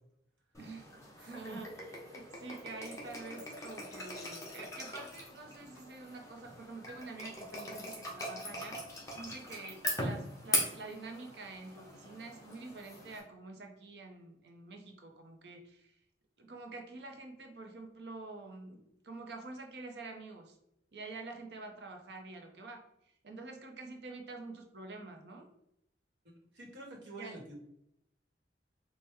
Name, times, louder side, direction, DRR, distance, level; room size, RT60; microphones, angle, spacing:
sound 1, 0.5-13.2, left 1 dB, 15° left, 0.8 m, -41 dB
voice 1, 0.6-1.7 2.1-8.8 9.1-15.9 16.4-20.6 20.9-22.8 23.2-25.5 27.2-27.4, right 3 dB, 70° right, 3 dB, 0.6 m, -47 dB
voice 2, 1.1-1.6 2.1-2.3 26.5-27.5, right 2 dB, 90° right, 0 dB, 1.1 m, -49 dB
4.3 x 2.1 x 3.4 m, 0.79 s
head